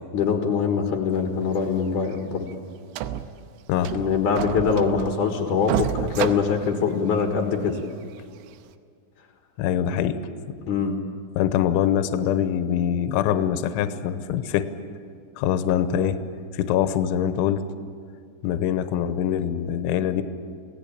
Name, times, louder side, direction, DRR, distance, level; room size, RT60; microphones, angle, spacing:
voice 1, 0.1-2.5 3.9-7.8 10.6-11.0, left 6 dB, 65° left, 3 dB, 2.1 m, -23 dB
sound 1, 1.5-1.8 2.1-2.2 2.5-2.6 3.0-3.5 3.8-5.3 5.6-7.3 7.7-7.8 8.5-8.6, right 11 dB, 80° right, 3.1 m, -30 dB
voice 2, 9.6-10.2 11.4-14.7 15.4-16.2 16.5-17.6 18.4-20.2, left 10 dB, 80° left, 10 dB, 3.1 m, -23 dB
27.5 x 18.0 x 8.7 m, 2.2 s
omnidirectional pair, 5.9 m